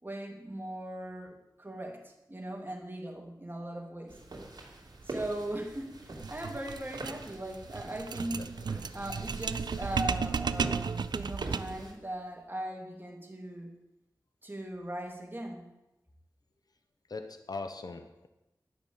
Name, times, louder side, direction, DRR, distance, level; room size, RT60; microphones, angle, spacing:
voice 1, 0.0-4.2 5.0-8.5 8.9-13.7 14.4-15.6, right 1 dB, 30° right, 1 dB, 2.9 m, -39 dB
sound 1, 4.1-11.9, right 2 dB, 70° right, 2.8 m, -44 dB
sound 2, 6.2-11.9, right 5 dB, 90° right, 0.4 m, -34 dB
voice 2, 17.1-18.3, left 3 dB, 65° left, 8 dB, 1.0 m, -40 dB
11.5 x 6.2 x 8.9 m, 0.95 s
cardioid pair, 40°, 7 cm